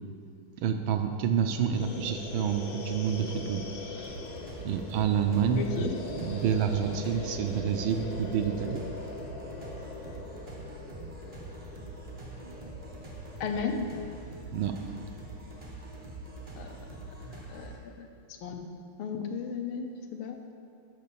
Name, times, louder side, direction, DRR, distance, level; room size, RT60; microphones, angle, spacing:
voice 1, 0.6-3.6 4.0-4.1 4.6-8.8 14.5-14.7, right 7 dB, 75° right, 6 dB, 1.3 m, -28 dB
sound 1, 1.7-14.5, left 3 dB, 60° left, 1.1 m, -42 dB
sound 2, 4.0-17.8, right 2 dB, 30° right, 0.7 m, -44 dB
voice 2, 5.6-6.0 13.4-13.9 16.6-16.7 17.5-17.7 18.0-18.1 18.4-18.7 19.0-20.5, left 5 dB, 75° left, 4 dB, 1.5 m, -34 dB
6.8 x 5.4 x 6.8 m, 2.5 s
omnidirectional pair, 2.3 m